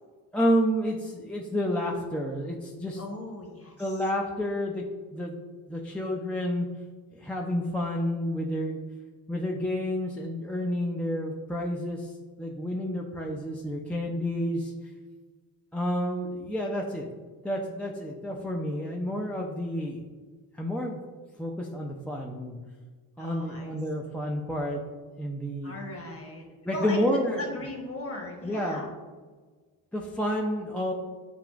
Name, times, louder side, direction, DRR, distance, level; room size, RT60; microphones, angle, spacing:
voice 1, 0.3-3.0 3.8-4.8 5.1-5.4 5.7-6.7 7.2-8.8 9.3-12.1 12.4-14.7 15.7-17.0 17.4-20.0 20.6-21.0 21.4-22.6 23.2-24.8 25.2-25.7 26.6-27.4 28.4-28.8 29.9-30.9, equal, 5° left, -1 dB, 0.4 m, -29 dB
voice 2, 3.0-4.0 23.2-23.8 25.6-28.9, left 2 dB, 30° left, 1 dB, 1.2 m, -38 dB
6.9 x 2.4 x 2.4 m, 1.4 s
supercardioid pair, 55°, 48 cm